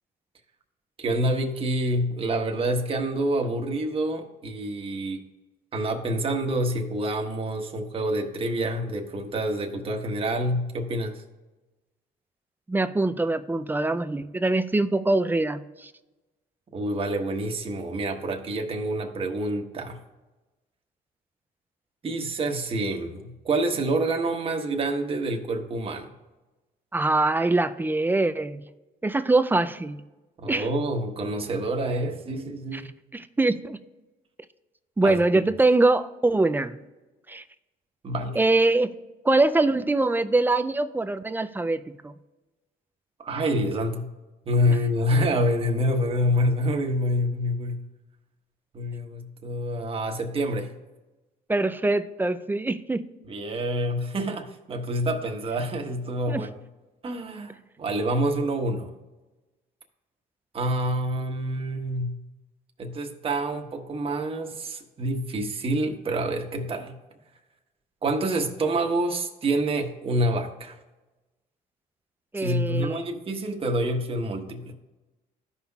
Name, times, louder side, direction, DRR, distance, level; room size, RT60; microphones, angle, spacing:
voice 1, 1.0-5.2 5.7-11.2 16.7-20.0 22.0-26.1 30.4-32.9 35.0-35.2 38.0-38.4 43.2-44.1 44.4-47.9 48.7-50.7 53.2-56.5 57.0-58.9 60.5-62.2 62.8-66.9 68.0-70.8 72.3-74.7, right 1 dB, 35° right, 3 dB, 1.2 m, -27 dB
voice 2, 12.7-15.9 26.9-28.6 29.0-30.0 30.5-30.7 32.7-32.8 33.1-33.8 35.0-36.8 37.3-37.4 38.4-38.9 39.2-42.1 51.5-53.0 56.3-56.4 72.3-73.0, right 2 dB, 10° right, 11 dB, 0.4 m, -23 dB
14.5 x 5.6 x 2.3 m, 1.1 s
cardioid pair, 110°, 17 cm